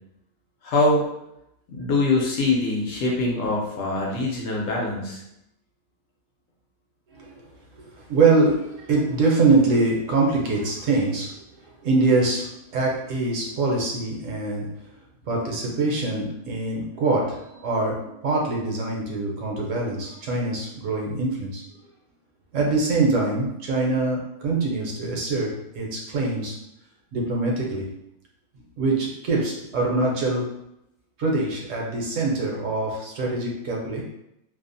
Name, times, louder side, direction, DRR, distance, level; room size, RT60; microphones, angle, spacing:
voice 1, 0.6-1.1 1.7-5.2, left 2 dB, 70° left, -2 dB, 0.9 m, -23 dB
voice 2, 7.7-14.7 15.2-21.6 22.5-26.6 27.1-27.9 28.8-30.5 31.2-34.0, right 3 dB, 70° right, -2 dB, 0.9 m, -24 dB
2.6 x 2.0 x 2.5 m, 0.82 s
omnidirectional pair, 1.5 m